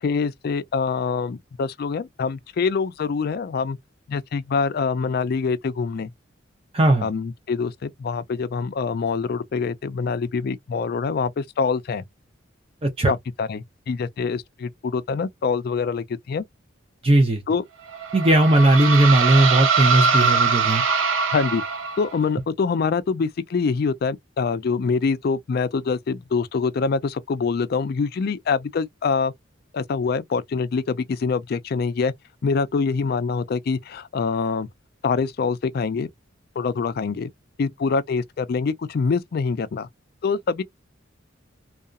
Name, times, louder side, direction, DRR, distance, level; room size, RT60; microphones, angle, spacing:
voice 1, 0.0-3.8 4.1-6.1 7.0-12.0 13.1-16.4 17.5-17.6 21.3-21.6 22.0-29.3 29.7-32.1 32.4-34.7 35.0-36.1 36.6-37.3 37.6-39.9 40.2-40.6, left 5 dB, 50° left, 0.3 m, -25 dB
voice 2, 6.7-7.1 12.8-13.1 17.0-17.4 18.1-20.8, right 1 dB, 30° right, 0.6 m, -17 dB
sound 1, 17.9-22.2, right 5 dB, 85° right, 0.8 m, -22 dB
2.7 x 2.3 x 2.3 m
head